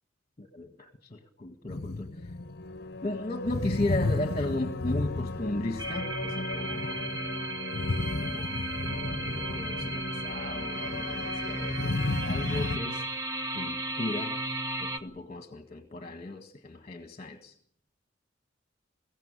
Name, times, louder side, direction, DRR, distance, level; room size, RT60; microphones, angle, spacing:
voice 1, 0.4-2.3 3.0-7.1 8.2-12.0 12.2-13.1 13.5-14.4 14.8-17.5, left 2 dB, 35° left, 7 dB, 1.7 m, -35 dB
sound 1, 1.7-12.8, left 2 dB, 55° left, 0.9 m, -33 dB
sound 2, 5.8-15.0, right 2 dB, 20° right, 1.4 m, -35 dB
23.0 x 16.5 x 9.8 m, 0.69 s
head